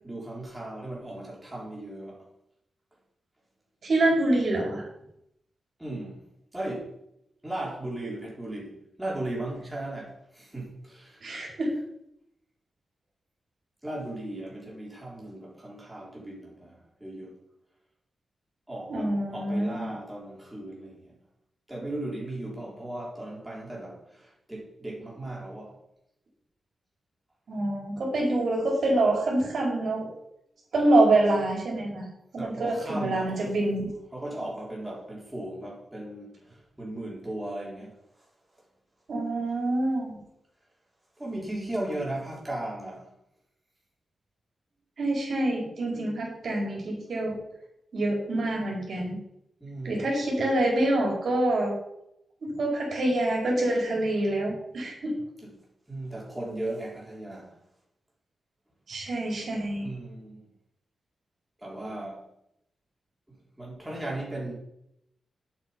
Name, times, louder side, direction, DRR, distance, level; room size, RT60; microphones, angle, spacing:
voice 1, 0.0-2.3 5.8-6.3 6.5-6.9 7.4-11.3 13.8-17.4 18.7-21.2 21.7-25.8 32.4-33.5 34.1-38.0 41.2-43.1 49.6-50.1 55.4-55.5 55.9-57.6 59.8-60.5 61.6-62.2 63.6-64.5, right 1 dB, 10° right, -4 dB, 4.0 m, -37 dB
voice 2, 3.8-4.8 11.2-11.7 18.9-19.9 27.5-30.1 30.7-32.1 32.3-33.9 39.1-40.2 45.0-47.4 47.9-49.2 49.8-51.7 52.4-55.1 58.9-59.9, right 1 dB, 55° right, -2 dB, 4.4 m, -26 dB
11.0 x 7.9 x 5.3 m, 0.79 s
wide cardioid pair, 165°, 0 cm